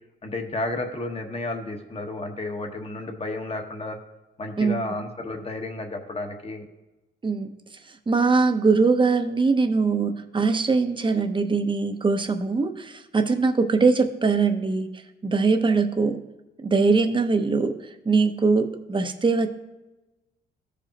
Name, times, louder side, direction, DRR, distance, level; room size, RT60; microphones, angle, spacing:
voice 1, 0.2-4.0 4.4-6.6, left 2 dB, 30° left, 4 dB, 1.3 m, -32 dB
voice 2, 7.2-7.6 8.1-16.2 16.6-19.5, right 4 dB, 25° right, 6 dB, 0.9 m, -22 dB
14.5 x 5.1 x 2.9 m, 1.0 s
cardioid pair, 90°, 20 cm